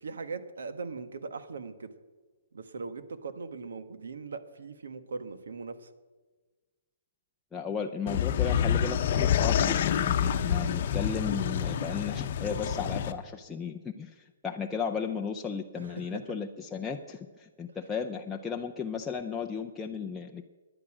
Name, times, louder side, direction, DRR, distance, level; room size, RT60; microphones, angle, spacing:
voice 1, 0.0-1.9 2.5-5.9 15.8-16.4, right 4 dB, 85° right, 10 dB, 1.5 m, -40 dB
voice 2, 7.5-20.5, left 6 dB, 5° left, 1 dB, 0.5 m, -35 dB
sound 1, 8.1-13.1, left 8 dB, 40° left, 0.8 m, -27 dB
17.5 x 11.0 x 6.1 m, 1.3 s
hypercardioid pair, 170°, 0 cm